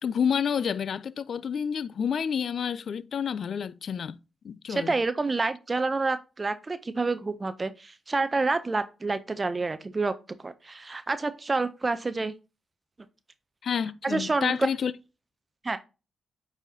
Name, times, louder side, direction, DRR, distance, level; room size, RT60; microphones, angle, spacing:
voice 1, 0.0-4.2 4.4-4.9 13.6-14.9, left 7 dB, 65° left, 0.4 m, -29 dB
voice 2, 4.7-10.1 10.4-12.3 14.0-14.5 15.6-15.8, right 3 dB, 35° right, 0.5 m, -28 dB
8.8 x 4.1 x 2.7 m
supercardioid pair, 45°, 0 cm